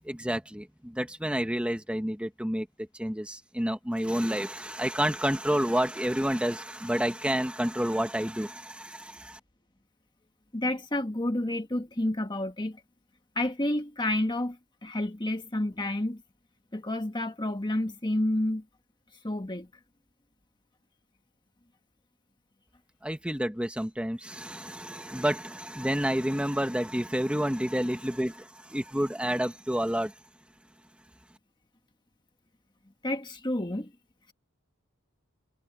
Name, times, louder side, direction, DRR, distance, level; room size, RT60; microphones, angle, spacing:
voice 1, 0.0-2.7 2.9-9.4 23.0-30.1, equal, 5° right, 1.9 m, -29 dB
voice 2, 10.5-12.8 13.3-16.2 16.7-18.6 19.2-19.7 33.0-33.9, left 1 dB, 20° left, 1.5 m, -30 dB
head